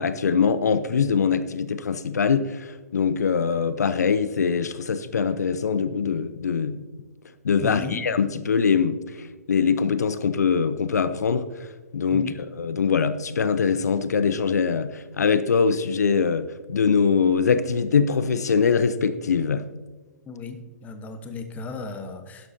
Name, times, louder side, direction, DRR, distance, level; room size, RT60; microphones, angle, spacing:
voice 1, 0.0-6.8 7.4-12.3 12.6-19.7, left 6 dB, 80° left, 0.6 m, -23 dB
voice 2, 7.6-8.1 12.1-12.4 20.3-22.5, left 4 dB, 20° left, 1.1 m, -35 dB
11.5 x 11.5 x 2.8 m
hypercardioid pair, 130°, 9 cm